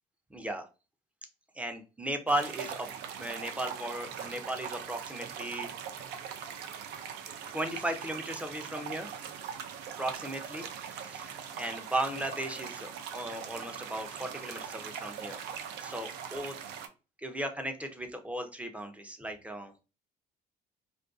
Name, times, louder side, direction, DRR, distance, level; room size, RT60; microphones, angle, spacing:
voice 1, 0.3-0.7 1.6-5.7 7.5-9.1 10.0-15.4 15.8-16.6 17.2-19.7, right 1 dB, 10° right, 5 dB, 0.4 m, -36 dB
sound 1, 2.3-16.9, right 8 dB, 85° right, 0.4 m, -41 dB
2.4 x 2.2 x 2.3 m, 0.31 s
cardioid pair, 110°, 17 cm